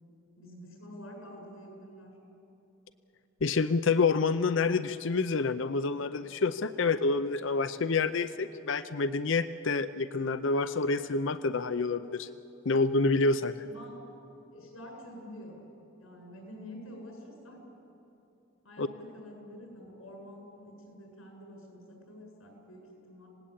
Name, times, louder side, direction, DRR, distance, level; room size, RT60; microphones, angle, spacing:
voice 1, 0.4-2.1 13.6-13.9 14.5-15.6 16.0-17.6 18.6-23.3, equal, 80° left, 0 dB, 7.7 m, -48 dB
voice 2, 3.4-12.3 12.6-13.5 18.8-18.9, left 4 dB, 60° left, 12 dB, 0.6 m, -28 dB
26.5 x 18.5 x 8.7 m, 2.9 s
head